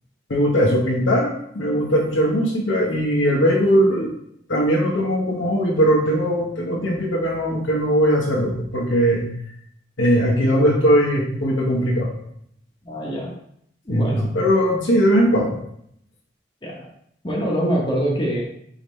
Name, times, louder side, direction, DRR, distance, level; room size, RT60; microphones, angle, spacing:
voice 1, 0.3-4.1 4.5-9.2 10.0-12.1 13.9-15.6, equal, 75° left, -2 dB, 0.9 m, -19 dB
voice 2, 12.8-13.3 13.9-14.3 16.6-16.9 17.2-18.4, equal, 25° left, -3 dB, 0.9 m, -24 dB
5.1 x 2.8 x 3.2 m, 0.70 s
head